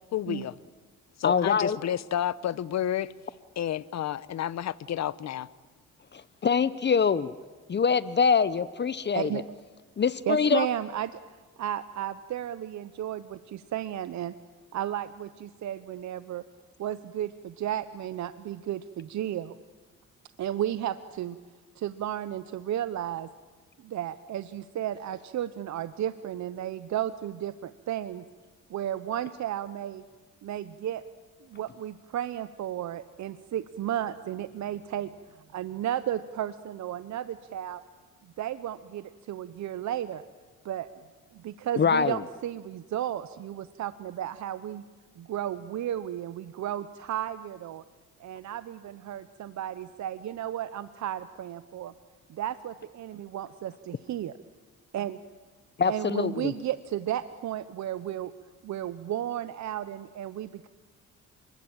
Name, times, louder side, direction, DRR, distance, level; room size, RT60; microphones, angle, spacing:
voice 1, 0.1-0.5 1.2-3.1 3.6-5.5, left 11 dB, 60° left, 17 dB, 1.0 m, -30 dB
voice 2, 1.2-1.8 6.1-7.3 7.7-9.3 10.0-10.7 41.8-42.2 55.8-56.5, left 6 dB, 35° left, 16 dB, 0.8 m, -24 dB
voice 3, 9.1-9.6 10.3-11.2 11.6-14.3 14.7-16.4 16.8-19.5 20.4-21.4 21.8-23.3 23.8-28.2 28.7-30.0 30.4-31.0 31.5-35.1 35.5-37.8 38.2-40.2 40.6-41.0 41.3-44.8 45.2-47.8 48.2-51.9 52.3-54.3 54.9-55.2 55.9-58.3 58.6-60.7, right 11 dB, 65° right, 13 dB, 0.9 m, -33 dB
29.0 x 21.5 x 9.0 m, 1.3 s
cardioid pair, 90°, 30 cm